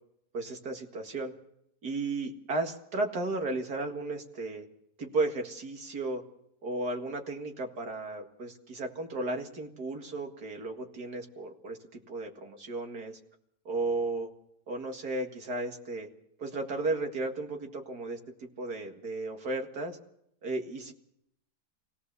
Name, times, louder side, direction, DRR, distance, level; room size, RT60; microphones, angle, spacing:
voice 1, 0.3-1.3 1.8-4.7 5.0-6.2 6.6-13.2 13.7-14.3 14.7-16.1 16.4-20.0 20.4-20.9, right 2 dB, 80° right, 4 dB, 2.5 m, -34 dB
25.5 x 17.5 x 6.9 m, 0.76 s
omnidirectional pair, 1.7 m